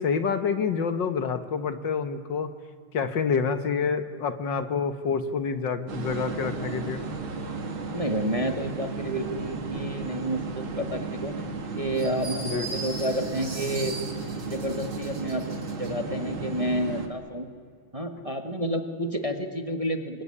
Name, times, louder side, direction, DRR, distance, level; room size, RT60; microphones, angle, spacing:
voice 1, 0.0-2.5 2.9-7.0 12.4-12.7, left 5 dB, 65° left, 10 dB, 1.9 m, -27 dB
sound 1, 5.9-17.1, right 4 dB, 85° right, 2.8 m, -34 dB
voice 2, 7.9-11.3 11.7-13.9 14.4-17.5 17.9-20.2, equal, 20° right, 6 dB, 1.5 m, -30 dB
sound 2, 11.9-15.9, right 3 dB, 70° right, 4.4 m, -39 dB
26.5 x 21.5 x 9.9 m, 2.1 s
omnidirectional pair, 2.2 m